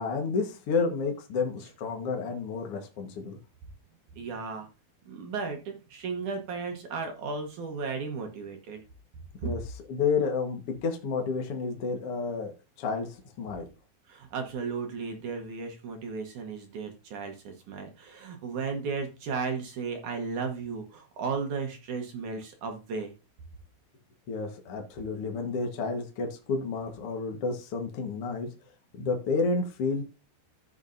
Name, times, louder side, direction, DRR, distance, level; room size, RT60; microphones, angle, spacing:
voice 1, 0.0-3.4 9.4-9.6 9.9-12.5 12.8-13.7 24.3-28.5 29.0-30.0, left 4 dB, 55° left, 3 dB, 1.6 m, -30 dB
voice 2, 4.2-4.7 5.1-8.8 9.4-9.5 14.1-23.1, right 4 dB, 65° right, 4 dB, 2.3 m, -35 dB
15.0 x 6.4 x 2.6 m, 0.30 s
omnidirectional pair, 4.5 m